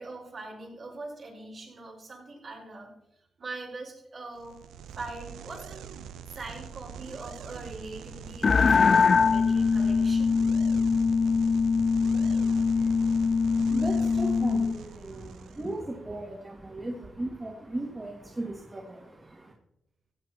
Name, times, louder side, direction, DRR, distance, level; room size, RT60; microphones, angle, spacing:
voice 1, 0.0-2.9 3.4-4.6 5.0-5.9 6.3-10.4, right 2 dB, 60° right, -1 dB, 5.3 m, -42 dB
sound 1, 4.4-15.8, right 8 dB, 90° right, 0.5 m, -44 dB
sound 2, 8.4-14.8, left 5 dB, 55° left, 0.3 m, -23 dB
voice 2, 12.1-19.5, right 2 dB, 35° right, -1 dB, 2.2 m, -37 dB
15.5 x 8.8 x 4.4 m, 0.82 s
supercardioid pair, 45°, 0 cm